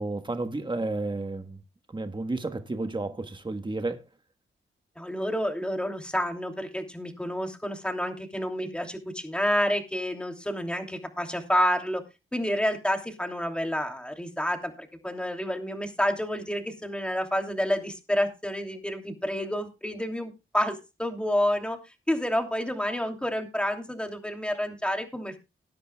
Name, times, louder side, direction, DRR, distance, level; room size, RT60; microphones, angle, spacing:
voice 1, 0.0-1.6 1.9-4.0, right 2 dB, 20° right, 1.3 m, -31 dB
voice 2, 5.0-12.0 12.3-21.8 22.1-25.4, equal, 5° left, 2.9 m, -29 dB
19.5 x 10.0 x 2.3 m
cardioid pair, 75°, 21 cm